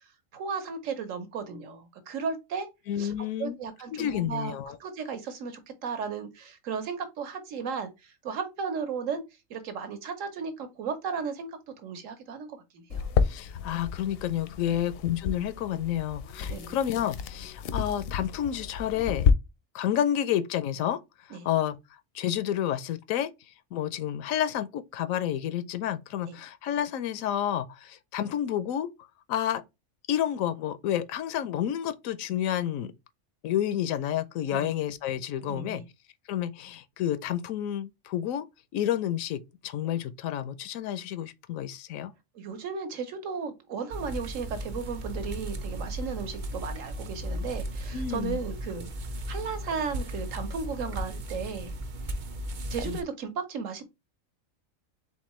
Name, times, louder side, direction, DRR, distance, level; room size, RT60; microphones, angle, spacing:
voice 1, 0.3-2.7 3.0-3.1 3.4-4.5 4.8-9.2 9.5-13.1 14.7-14.9 16.5-16.8 21.3-21.5 26.3-26.4 34.5-34.7 35.5-35.8 42.3-48.9 49.3-51.7 52.7-53.8, right 5 dB, 75° right, 1.3 m, -35 dB
voice 2, 2.9-3.6 3.9-4.8 13.2-19.4 19.7-21.0 21.3-21.8 22.1-23.3 23.7-28.9 29.3-29.6 30.1-32.9 33.4-35.8 36.3-38.4 38.7-42.1 47.9-48.4 52.9-53.0, left 11 dB, 85° left, 1.0 m, -30 dB
sound 1, 12.9-19.3, left 6 dB, 65° left, 0.6 m, -30 dB
sound 2, 43.9-53.0, right 1 dB, 50° right, 0.6 m, -36 dB
4.3 x 3.6 x 3.0 m
omnidirectional pair, 1.4 m